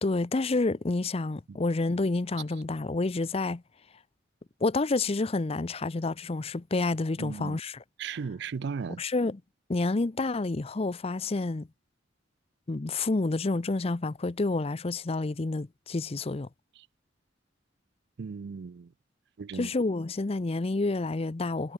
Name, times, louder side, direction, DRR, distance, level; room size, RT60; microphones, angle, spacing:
voice 1, 0.0-3.6 4.6-7.8 9.0-9.4 9.7-11.7 12.7-16.5 19.5-21.7, left 3 dB, 30° left, 0.6 m, -29 dB
voice 2, 7.2-7.6 8.0-9.0 18.2-18.9 19.4-19.7, right 5 dB, 60° right, 0.4 m, -36 dB
head